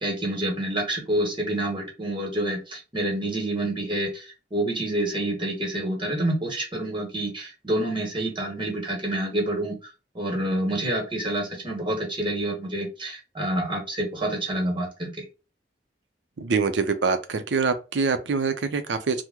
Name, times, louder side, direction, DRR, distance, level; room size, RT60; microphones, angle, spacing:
voice 1, 0.0-9.7 10.1-15.2, right 1 dB, 30° right, 1.1 m, -28 dB
voice 2, 16.4-19.2, right 4 dB, 85° right, 0.5 m, -25 dB
2.9 x 2.1 x 3.5 m
head